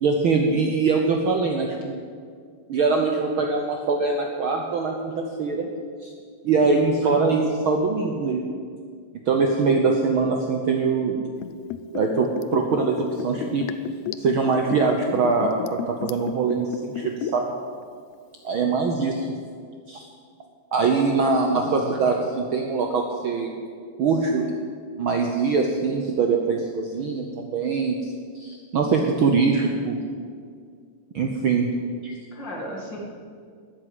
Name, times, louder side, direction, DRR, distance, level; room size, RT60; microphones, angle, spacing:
voice 1, 0.0-2.0 2.7-5.7 6.0-6.1 6.4-8.5 9.3-11.2 11.9-13.6 14.2-17.5 18.4-19.3 19.9-20.1 20.7-23.6 24.0-24.5 25.0-30.0 31.1-31.7 32.0-32.2, right 4 dB, 90° right, 3 dB, 1.1 m, -23 dB
voice 2, 6.6-6.9 21.5-21.8 32.3-33.0, left 1 dB, 35° left, -1 dB, 2.5 m, -35 dB
Liquid, 11.4-17.5 17.8-17.9, left 10 dB, 80° left, 1.6 m, -32 dB
12.5 x 9.9 x 9.6 m, 2.1 s
omnidirectional pair, 3.8 m